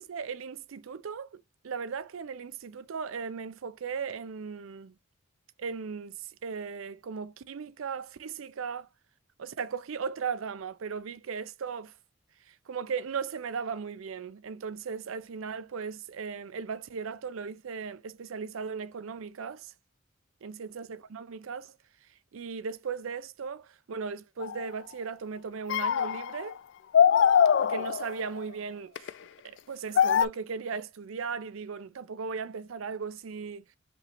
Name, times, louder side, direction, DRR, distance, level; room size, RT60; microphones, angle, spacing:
voice 1, 0.0-5.0 5.6-8.9 9.4-11.9 12.5-19.7 20.4-21.8 22.3-26.6 27.6-29.1 29.4-33.6, right 5 dB, 80° right, 0.5 m, -37 dB
sound 1, 24.4-24.7 25.7-26.5 26.9-28.3 29.0-29.1 30.0-30.3, left 8 dB, 60° left, 0.3 m, -23 dB
5.2 x 3.1 x 3.0 m
head